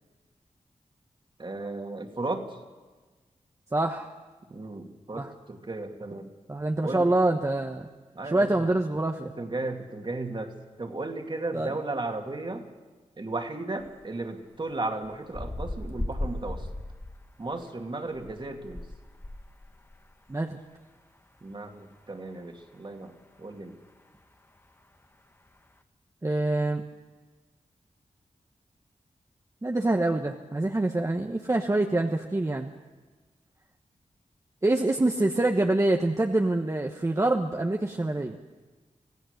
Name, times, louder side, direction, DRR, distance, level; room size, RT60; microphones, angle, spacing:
voice 1, 1.4-2.6 4.5-6.3 6.8-7.1 8.1-8.7 9.4-10.5 10.8-12.6 13.2-16.7 17.4-18.8 21.4-23.1 23.4-23.7, right 2 dB, 40° right, 3 dB, 2.4 m, -35 dB
voice 2, 3.7-4.1 5.1-5.3 6.5-7.9 8.2-9.3 11.5-11.7 20.3-20.6 26.2-26.8 29.6-32.7 34.6-38.4, right 2 dB, 25° right, 3 dB, 1.1 m, -25 dB
sound 1, 13.8-13.9 15.0-17.5 18.1-20.0 20.3-20.4, left 1 dB, 20° left, 1.4 m, -36 dB
25.5 x 16.5 x 6.6 m, 1.3 s
wide cardioid pair, 75°, 13 cm